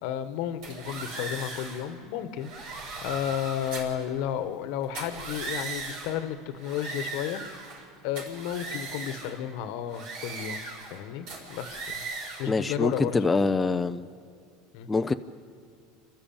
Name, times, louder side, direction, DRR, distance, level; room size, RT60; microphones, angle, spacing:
voice 1, 0.0-7.4 8.0-10.6 10.9-12.0 12.4-13.2 14.7-14.9, left 10 dB, 70° left, 12 dB, 1.3 m, -33 dB
sound 1, 0.6-1.9 2.4-4.0 4.8-6.2 6.6-7.9 8.2-9.4 9.9-11.0 11.3-12.5, right 3 dB, 70° right, 6.3 m, -38 dB
voice 2, 12.5-14.1 14.9-15.1, left 3 dB, 15° left, 8 dB, 0.6 m, -25 dB
28.0 x 12.5 x 8.9 m, 2.3 s
supercardioid pair, 105°, 0 cm